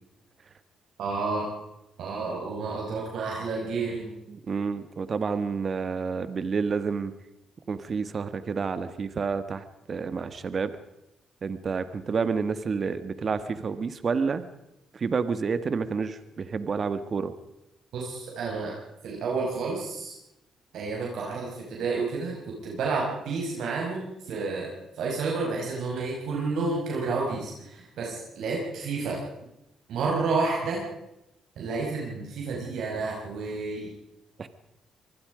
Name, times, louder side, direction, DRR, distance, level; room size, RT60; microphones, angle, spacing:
voice 1, 1.0-1.5 2.0-4.2 17.9-18.8 19.0-20.1 20.7-24.7 25.0-29.2 29.9-30.8 31.6-34.0, right 4 dB, 75° right, -2 dB, 5.4 m, -30 dB
voice 2, 4.3-7.1 7.7-10.7 11.4-14.4 14.9-17.3 34.4-34.5, right 5 dB, 45° right, 12 dB, 1.6 m, -29 dB
25.0 x 20.5 x 5.1 m, 0.88 s
cardioid pair, 90°, 0 cm